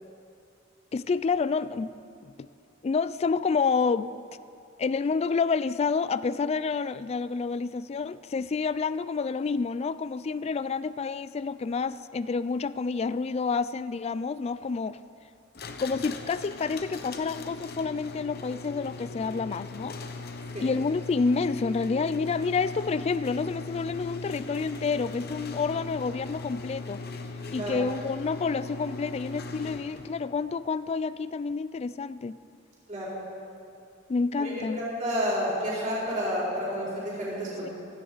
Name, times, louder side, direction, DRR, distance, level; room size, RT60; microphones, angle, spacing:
voice 1, 0.9-1.9 2.2-2.5 2.8-4.1 4.8-15.0 15.8-20.0 20.6-27.0 27.5-32.4 34.1-34.8 37.6-37.7, left 4 dB, 35° left, 15 dB, 0.3 m, -29 dB
sound 1, 15.5-30.2, left 3 dB, 55° left, 0.9 m, -39 dB
voice 2, 34.4-37.7, equal, 45° right, -6 dB, 4.3 m, -30 dB
16.5 x 14.5 x 4.0 m, 2.5 s
head